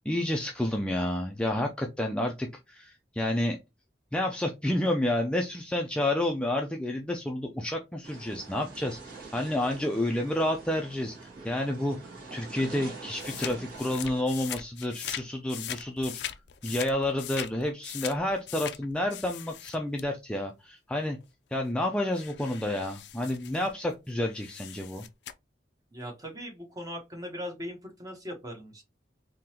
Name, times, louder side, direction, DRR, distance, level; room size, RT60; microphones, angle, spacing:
voice 1, 0.0-3.6 4.1-9.0 9.3-12.0 12.3-16.2 16.6-21.2 21.5-25.0, left 1 dB, 5° left, 0.4 m, -30 dB
sound 1, 8.0-14.2, right 3 dB, 55° right, 1.7 m, -45 dB
sound 2, 13.1-15.2 15.5-20.1 21.2-21.3 21.6-23.9 24.3-25.3, left 11 dB, 70° left, 0.4 m, -40 dB
voice 2, 25.9-28.8, equal, 20° right, 1.0 m, -39 dB
3.8 x 2.8 x 2.8 m
head